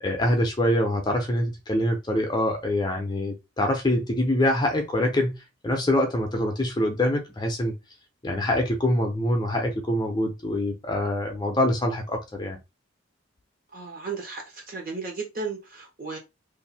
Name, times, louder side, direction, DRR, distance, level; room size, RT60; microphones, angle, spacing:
voice 1, 0.0-7.8 8.2-12.6, left 1 dB, 20° left, 0.6 m, -25 dB
voice 2, 13.7-16.2, right 4 dB, 40° right, 1.2 m, -34 dB
2.7 x 2.6 x 4.0 m
head